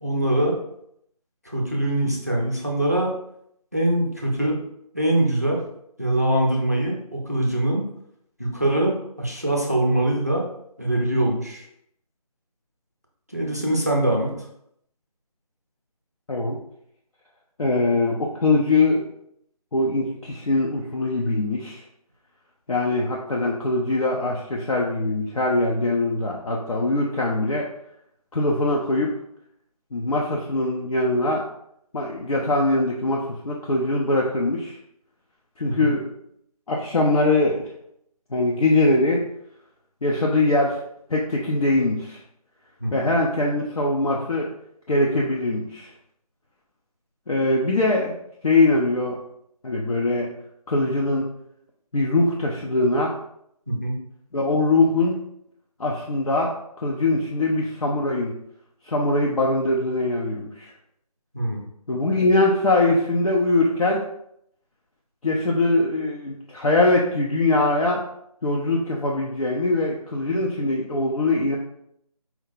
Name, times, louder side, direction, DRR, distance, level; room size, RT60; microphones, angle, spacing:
voice 1, 0.0-0.5 1.4-3.1 3.7-4.6 4.9-5.6 6.0-7.8 8.4-10.4 10.8-11.6 13.3-14.5 35.7-35.9 42.8-43.1 53.7-54.0 61.3-61.6, right 1 dB, 25° right, -1 dB, 0.4 m, -23 dB
voice 2, 17.6-19.0 19.7-21.8 22.7-27.7 28.3-29.1 29.9-31.4 31.9-34.8 35.6-36.0 36.7-37.6 38.3-39.2 40.0-40.8 41.1-42.2 42.9-44.5 44.9-45.9 47.3-48.1 48.4-49.2 49.6-50.3 50.7-51.3 51.9-53.1 54.3-55.2 55.8-58.3 58.9-60.7 61.9-64.0 65.2-68.0 68.4-71.6, left 2 dB, 65° left, -2 dB, 0.7 m, -22 dB
4.5 x 2.1 x 3.9 m, 0.74 s
figure-of-eight pair, 175°, 20 cm